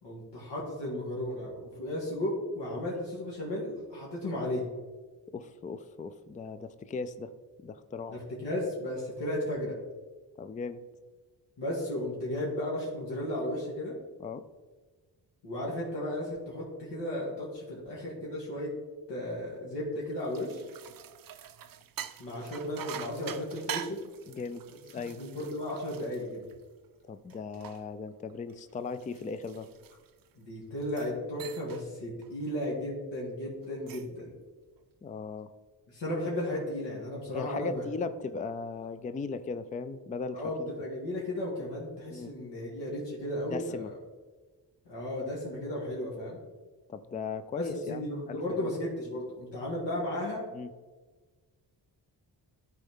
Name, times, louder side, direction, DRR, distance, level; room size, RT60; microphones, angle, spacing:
voice 1, 0.0-4.7 8.1-9.8 11.6-14.0 15.4-18.7 19.1-20.6 22.2-24.0 25.1-26.5 30.4-34.3 35.9-37.8 40.3-43.9 44.9-46.4 47.5-50.5, left 1 dB, 80° left, -5 dB, 2.1 m, -34 dB
voice 2, 5.3-7.3 7.6-8.2 10.4-10.8 14.2-14.5 24.3-25.2 27.1-29.7 35.0-35.5 37.3-40.7 42.1-42.3 43.5-43.9 46.9-48.7 50.5-50.7, left 4 dB, 20° left, 12 dB, 0.3 m, -38 dB
sound 1, 20.0-26.8 27.3-30.3 30.8-31.1 31.4-31.9 32.2-32.5 33.6-34.2, right 10 dB, 55° right, 0.5 m, -44 dB
12.5 x 4.4 x 3.6 m, 1.3 s
cardioid pair, 105°, 42 cm